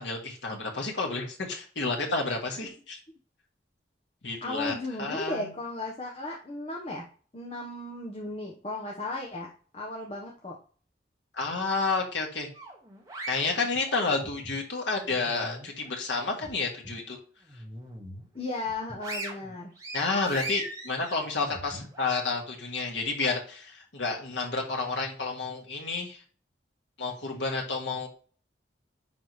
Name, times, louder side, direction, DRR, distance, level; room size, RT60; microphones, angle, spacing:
voice 1, 0.0-3.0 4.2-5.5 11.3-12.5 13.3-17.2 19.9-26.2 27.0-28.1, left 3 dB, 80° left, 1 dB, 1.9 m, -30 dB
voice 2, 4.4-7.1 7.3-10.6 18.3-19.7, left 2 dB, 30° left, -1 dB, 1.0 m, -35 dB
sound 1, 12.5-14.6 15.0-16.5 16.8-17.0 17.5-18.3 18.7-22.1, right 2 dB, 20° right, 1.6 m, -40 dB
10.0 x 3.7 x 3.2 m, 0.42 s
head